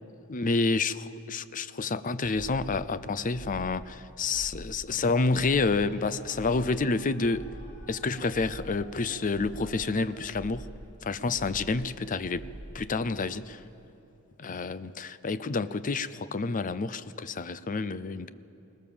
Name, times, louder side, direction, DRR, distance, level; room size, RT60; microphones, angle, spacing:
voice 1, 0.3-7.5 7.9-10.7 11.0-12.4 12.7-13.6 14.4-18.3, left 3 dB, 35° left, 15 dB, 0.6 m, -29 dB
sound 1, 3.2-3.9 4.2-4.9 5.2-5.9 6.2-6.9 7.2-7.9 8.2-8.9 9.2-9.9 10.2-10.9 11.2-11.9 12.2-12.9, right 1 dB, ahead, 1.2 m, -45 dB
sound 2, 5.6-10.5, left 1 dB, 70° left, 3.5 m, -53 dB
21.0 x 19.5 x 7.2 m, 2.8 s
head